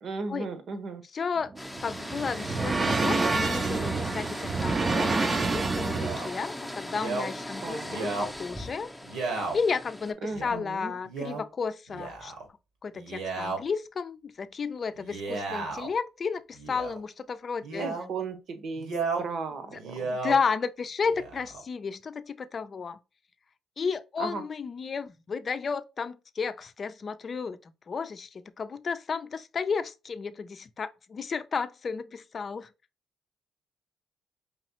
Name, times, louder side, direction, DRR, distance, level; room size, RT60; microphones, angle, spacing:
voice 1, 0.0-1.0 7.6-8.1 10.2-11.0 17.8-18.9 19.2-20.1 24.2-24.4, right 4 dB, 65° right, 1.1 m, -35 dB
voice 2, 1.1-1.5 1.8-8.9 9.5-12.3 12.8-17.9 19.7-19.8 20.1-23.0 23.8-32.7, left 5 dB, 45° left, 0.5 m, -33 dB
sound 1, 1.4-6.5, right 3 dB, 35° right, 0.6 m, -28 dB
sound 2, 1.6-10.1, left 1 dB, ahead, 0.7 m, -39 dB
Male speech man speaking, 5.9-6.3 6.9-7.3 7.8-8.3 9.0-9.6 10.3-10.6 11.1-11.4 11.9-12.4 12.9-13.6 15.0-15.9 16.6-17.0 17.6-18.1 18.8-19.3 19.7-20.4 21.0-21.6, right 3 dB, 85° right, 1.7 m, -34 dB
4.8 x 3.0 x 2.9 m
cardioid pair, 90°, 0 cm